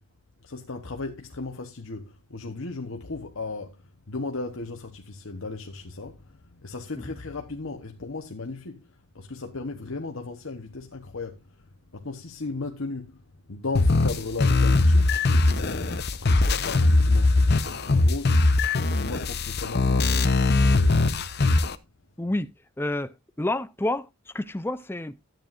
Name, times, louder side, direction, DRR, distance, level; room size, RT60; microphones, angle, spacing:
voice 1, 0.4-21.3, left 3 dB, 65° left, 1.1 m, -36 dB
sound 1, 13.7-21.7, left 2 dB, 50° left, 0.8 m, -21 dB
voice 2, 22.2-22.5 22.8-23.1 23.4-24.1 24.3-25.1, left 1 dB, 10° left, 0.5 m, -28 dB
13.5 x 9.1 x 2.5 m
head